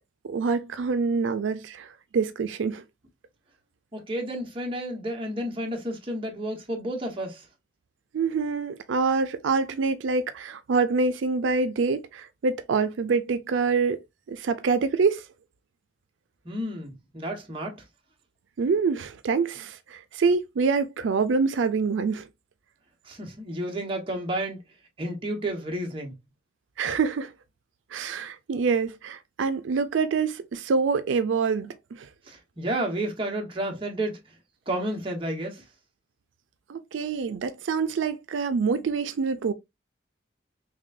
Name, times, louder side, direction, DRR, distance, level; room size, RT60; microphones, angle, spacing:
voice 1, 0.2-2.8 8.1-14.0 14.3-15.2 18.6-22.3 26.8-27.3 27.9-32.1 36.7-39.5, right 4 dB, 90° right, 0.4 m, -26 dB
voice 2, 3.9-7.4 16.4-17.8 23.0-24.6 25.0-26.1 32.3-34.2 34.7-35.6, right 1 dB, 30° right, 1.1 m, -31 dB
6.0 x 2.2 x 2.5 m
head